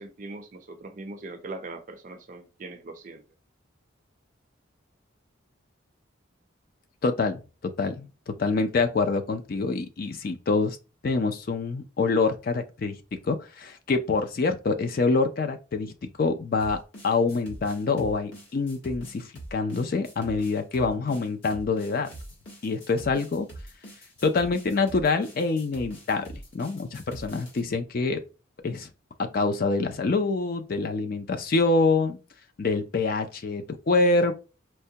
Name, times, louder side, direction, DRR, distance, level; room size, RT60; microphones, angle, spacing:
voice 1, 0.0-3.2, right 2 dB, 40° right, 0.5 m, -40 dB
voice 2, 7.0-7.4 7.8-10.8 11.0-13.0 13.2-15.9 16.2-22.1 22.6-23.5 24.2-26.3 26.5-28.2 28.6-28.9 29.2-32.2 32.6-34.4, left 3 dB, 45° left, 0.4 m, -26 dB
sound 1, 16.6-27.6, right 1 dB, 65° left, 1.3 m, -44 dB
4.5 x 2.2 x 2.7 m
head